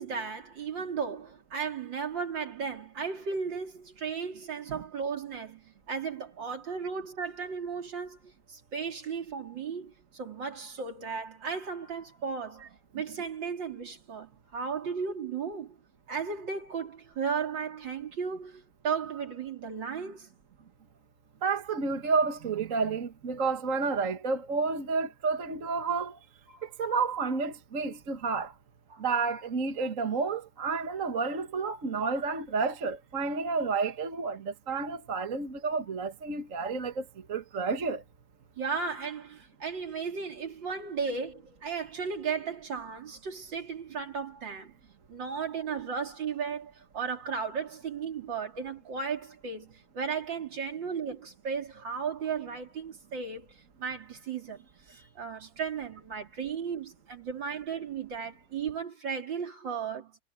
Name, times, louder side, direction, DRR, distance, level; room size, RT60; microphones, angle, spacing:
voice 1, 0.0-15.8 16.1-20.3 26.5-26.7 28.9-29.1 38.6-44.7 45.1-60.2, right 6 dB, 55° right, 3.7 m, -35 dB
voice 2, 21.4-26.2 26.6-28.5 29.0-38.0, right 4 dB, 40° right, 1.7 m, -30 dB
omnidirectional pair, 2.4 m